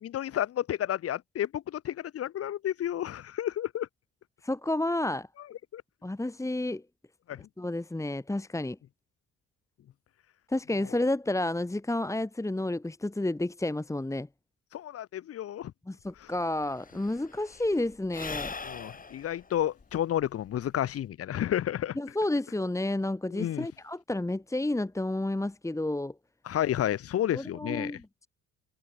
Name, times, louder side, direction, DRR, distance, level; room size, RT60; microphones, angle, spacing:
voice 1, 0.0-3.9 5.7-5.8 7.3-7.4 14.7-15.7 16.2-16.3 18.6-22.0 23.3-23.7 26.4-27.9, left 11 dB, 50° left, 0.7 m, -31 dB
voice 2, 4.4-5.3 6.0-6.8 7.6-8.8 10.5-14.3 15.9-18.5 22.0-26.1 27.3-28.3, left 1 dB, 10° left, 1.6 m, -30 dB
Sigh / Breathing, 16.1-16.2 16.3-21.1, left 4 dB, 25° left, 2.2 m, -42 dB
cardioid pair, 90°, 30 cm